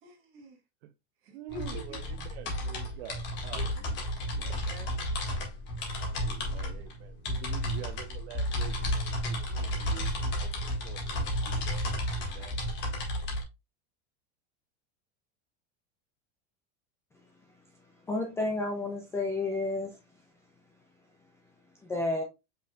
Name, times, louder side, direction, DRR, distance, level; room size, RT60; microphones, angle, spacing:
voice 1, 0.0-0.6 1.2-2.0 3.5-3.7 4.3-4.9, equal, 40° right, 1.7 m, -46 dB
voice 2, 1.3-4.0 6.1-11.9 12.2-12.6, right 12 dB, 65° right, 0.6 m, -47 dB
sound 1, 1.5-13.4, equal, 35° left, 1.6 m, -32 dB
voice 3, 18.1-20.0 21.8-22.2, left 2 dB, 10° left, 0.4 m, -31 dB
5.3 x 4.1 x 2.2 m
supercardioid pair, 160°, 34 cm